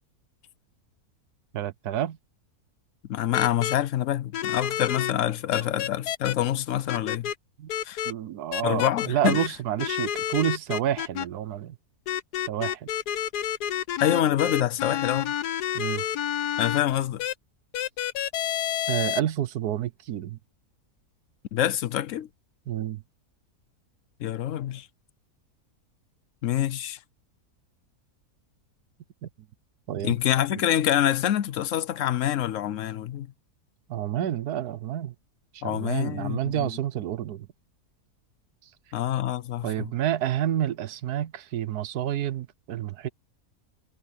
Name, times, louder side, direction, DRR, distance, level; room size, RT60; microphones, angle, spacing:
voice 1, 1.5-2.2 7.6-7.7 8.0-11.8 12.5-12.9 15.7-16.0 18.9-20.4 22.7-23.0 29.2-29.3 29.9-30.1 30.5-30.6 33.9-35.1 35.5-37.5 39.6-43.1, right 11 dB, 80° right, 1.3 m, -29 dB
voice 2, 3.1-7.3 7.8-8.0 8.6-9.4 14.0-15.4 16.6-17.2 21.5-22.3 24.2-24.9 26.4-27.0 30.0-33.3 35.6-36.7 38.9-39.9, left 11 dB, 65° left, 0.9 m, -26 dB
sound 1, 3.3-3.8 4.3-5.1 5.5-6.3 6.9-7.4 7.7-8.1 8.5-9.5 9.8-11.3 12.1-16.8 17.2-17.3 17.7-19.2, left 10 dB, 85° left, 1.4 m, -29 dB
omnidirectional pair, 1.6 m